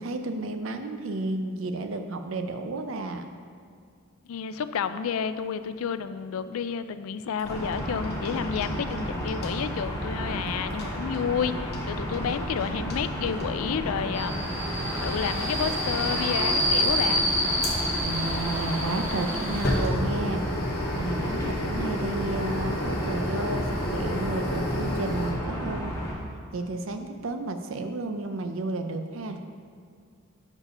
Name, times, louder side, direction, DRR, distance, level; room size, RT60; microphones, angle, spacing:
voice 1, 0.0-3.3 18.0-20.4 20.9-25.9 26.5-29.4, right 2 dB, 70° right, 7 dB, 0.6 m, -32 dB
voice 2, 4.3-14.5 15.0-17.3, left 7 dB, 85° left, 12 dB, 0.4 m, -30 dB
sound 1, 7.4-9.0 9.3-9.5 10.7-11.2 11.7-11.9 12.1-12.6 12.9-13.0 13.3-13.7 14.8-14.9 15.6-15.8 17.6-25.3, left 1 dB, 45° left, 1.0 m, -32 dB
sound 2, 7.4-26.1, equal, 15° left, 1.2 m, -32 dB
Subway metro underground, 14.1-19.8, equal, 10° right, 1.6 m, -28 dB
6.7 x 4.8 x 5.5 m, 2.2 s
head